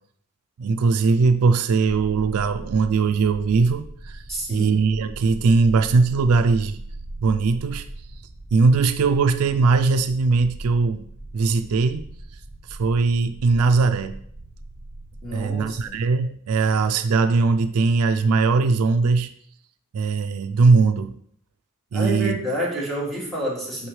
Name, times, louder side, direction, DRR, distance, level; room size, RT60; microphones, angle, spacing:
voice 1, 0.6-4.2 4.5-6.8 7.2-7.9 8.5-11.0 11.3-12.1 12.7-14.1 15.3-19.3 19.9-21.1 21.9-22.4, right 4 dB, 80° right, 9 dB, 0.4 m, -20 dB
sound 1, 1.9-15.9, right 1 dB, 45° right, 0.8 m, -39 dB
voice 2, 4.3-4.8 15.2-15.9 21.9-23.9, equal, ahead, -6 dB, 2.2 m, -28 dB
6.3 x 5.4 x 3.2 m, 0.64 s
head